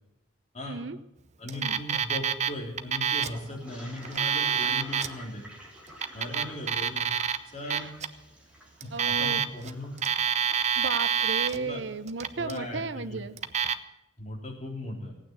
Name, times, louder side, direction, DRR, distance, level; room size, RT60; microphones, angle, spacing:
voice 1, 0.6-1.0 1.6-1.8 7.6-7.9 8.9-9.4 10.8-13.4, right 4 dB, 65° right, 12 dB, 0.8 m, -34 dB
voice 2, 1.4-5.5 6.1-7.1 7.5-8.0 8.8-9.9 11.5-11.8 12.3-13.2 14.2-15.1, left 1 dB, 35° left, -1 dB, 3.8 m, -38 dB
Alarm, 1.5-2.5 2.8-3.4 4.0-5.1 5.9-7.4 7.7-8.1 8.8-9.7 10.0-11.6 12.1-12.6 13.4-13.7, right 7 dB, 35° right, 0.6 m, -27 dB
Toilet flush, 3.3-11.9, equal, 5° right, 2.9 m, -50 dB
17.0 x 9.2 x 8.1 m, 0.89 s
head